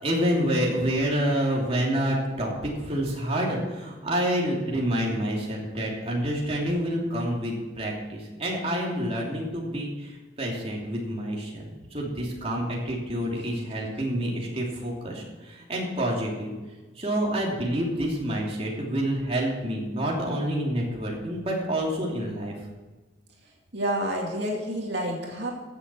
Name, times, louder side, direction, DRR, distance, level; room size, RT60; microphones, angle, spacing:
voice 1, 0.0-2.5 2.9-16.5 17.0-22.5, equal, 35° right, -3 dB, 2.9 m, -28 dB
voice 2, 23.7-25.5, right 1 dB, 65° right, -1 dB, 2.4 m, -29 dB
15.5 x 7.3 x 6.2 m, 1.2 s
head